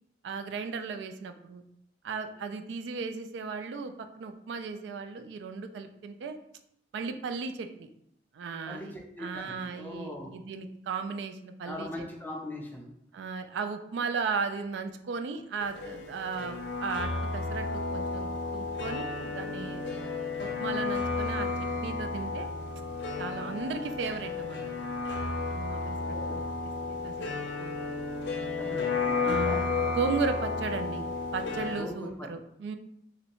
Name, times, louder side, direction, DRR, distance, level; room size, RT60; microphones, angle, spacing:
voice 1, 0.2-1.6 2.0-6.4 6.9-7.9 8.3-8.9 9.2-12.1 13.1-19.9 20.4-21.5 21.8-22.5 23.2-24.8 25.5-27.3 27.6-27.8 28.6-28.9 29.2-29.6 29.9-31.0 31.3-32.8, right 4 dB, 85° right, 8 dB, 0.3 m, -36 dB
voice 2, 8.7-10.3 11.6-12.9 26.0-26.4 28.6-29.6 31.8-32.3, left 1 dB, 10° left, 0 dB, 0.5 m, -40 dB
sound 1, 15.6-31.8, left 4 dB, 80° left, 0.5 m, -32 dB
3.1 x 2.6 x 2.9 m, 0.75 s
head